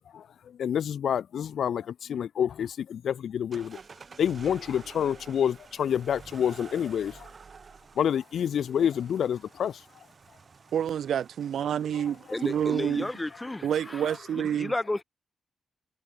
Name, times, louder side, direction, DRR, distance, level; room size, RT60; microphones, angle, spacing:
voice 1, 0.1-3.8 4.2-7.3 7.9-9.8, left 8 dB, 80° left, 1.7 m, -28 dB
sound 1, 3.5-13.7, right 5 dB, 45° right, 5.5 m, -51 dB
voice 2, 10.7-13.1 13.6-14.7, right 9 dB, 85° right, 1.3 m, -28 dB
voice 3, 12.3-15.0, left 2 dB, 15° left, 7.6 m, -33 dB
cardioid pair, 100°, 0 cm